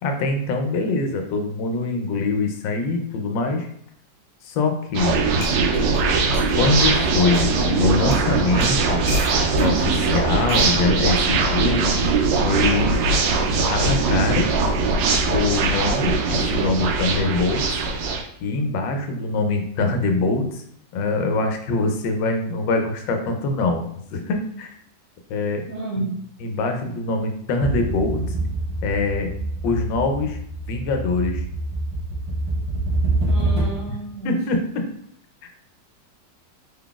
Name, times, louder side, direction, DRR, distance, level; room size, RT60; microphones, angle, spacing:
voice 1, 0.0-3.7 4.4-5.2 6.6-9.0 9.6-11.9 12.4-13.0 13.7-14.5 15.3-17.7 18.4-20.6 20.9-23.8 24.1-24.7 25.3-25.6 26.4-28.3 28.8-29.3 29.6-30.4 30.7-31.4 33.9-34.0 34.2-34.9, left 3 dB, 90° left, 4 dB, 1.3 m, -23 dB
sound 1, 4.9-18.2, right 3 dB, 85° right, 1.3 m, -21 dB
sound 2, 5.4-6.6 7.3-7.5 8.1-8.3 8.6-9.7 10.5-10.7 11.8-12.1, left 2 dB, 60° left, 0.9 m, -37 dB
voice 2, 25.7-26.5 33.2-34.4, right 2 dB, 50° right, -6 dB, 1.8 m, -31 dB
sound 3, 27.6-34.0, right 2 dB, 30° right, 0.6 m, -26 dB
3.8 x 3.5 x 2.3 m, 0.66 s
omnidirectional pair, 1.9 m